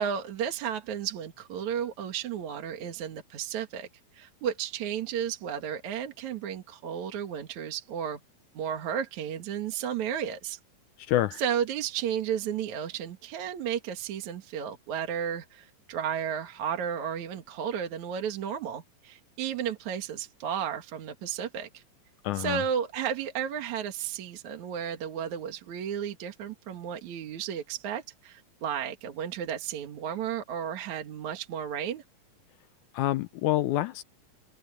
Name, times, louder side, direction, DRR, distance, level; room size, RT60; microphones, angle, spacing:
voice 1, 0.0-3.9 4.1-8.2 8.5-10.6 11.4-21.8 22.4-32.0, right 8 dB, 60° right, 2.8 m, -33 dB
voice 2, 11.0-11.4 22.2-22.6 32.9-34.0, left 14 dB, 80° left, 1.8 m, -27 dB
omnidirectional pair, 4.1 m